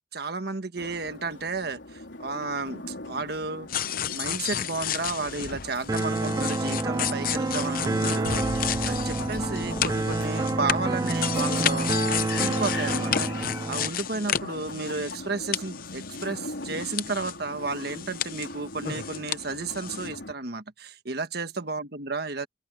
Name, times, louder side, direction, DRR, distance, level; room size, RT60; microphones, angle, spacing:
voice 1, 0.1-3.7 4.1-11.9 12.3-13.3 13.7-22.5, right 3 dB, 60° right, 1.5 m, -32 dB
sound 1, 0.8-20.3, left 2 dB, 90° left, 4.0 m, -40 dB
sound 2, 3.7-15.3 15.5-17.3 17.7-19.4 19.7-20.1, left 9 dB, 50° left, 0.7 m, -32 dB
sound 3, 5.9-13.9, right 2 dB, 20° right, 0.3 m, -28 dB
open air
head